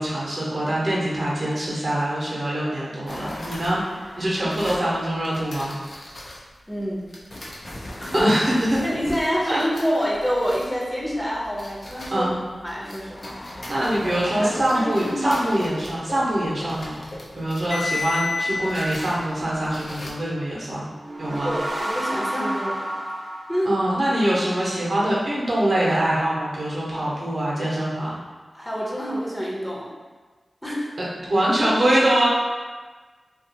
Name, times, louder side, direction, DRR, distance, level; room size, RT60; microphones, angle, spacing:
voice 1, 0.0-3.8 4.2-5.7 8.1-8.8 9.5-9.7 12.1-12.4 13.7-17.0 17.3-20.9 21.2-21.5 23.6-28.2 31.3-32.3, right 1 dB, 65° right, -6 dB, 0.7 m, -23 dB
sound 1, 3.1-6.4 7.1-12.3 12.6-20.1, left 2 dB, 65° left, 0.5 m, -35 dB
voice 2, 6.7-7.1 8.0-8.3 8.8-12.3 12.6-13.4 13.8-13.9 14.3-15.4 21.3-22.8 23.5-23.7 28.5-29.9 30.6-30.9, equal, 15° left, -5 dB, 0.7 m, -27 dB
sound 2, 20.9-24.4, right 1 dB, 40° right, 0.3 m, -30 dB
2.3 x 2.3 x 2.7 m, 1.4 s
cardioid pair, 45°, 0 cm